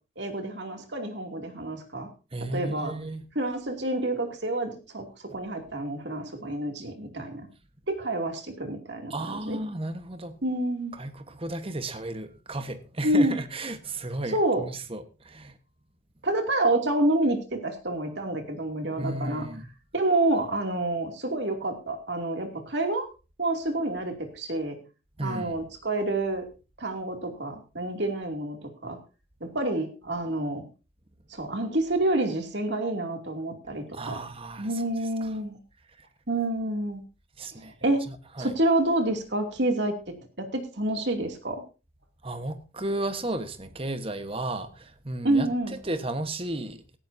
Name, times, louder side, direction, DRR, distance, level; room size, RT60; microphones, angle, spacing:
voice 1, 0.2-2.1 2.5-2.9 3.3-7.5 7.9-9.6 10.4-11.0 13.0-13.4 14.3-14.6 16.2-19.5 19.9-23.1 23.4-24.8 25.2-26.5 26.8-29.0 29.4-30.6 31.3-34.2 34.6-35.6 36.3-37.0 37.8-38.1 38.4-41.6 45.2-45.8, right 1 dB, 60° right, 2.7 m, -28 dB
voice 2, 2.3-3.2 5.3-5.4 9.1-10.4 10.9-15.5 19.0-19.7 25.2-25.6 33.9-34.8 35.2-35.3 36.0-36.1 37.4-37.7 38.1-38.5 42.2-46.8, right 1 dB, 30° right, 1.3 m, -34 dB
17.5 x 14.0 x 2.7 m
head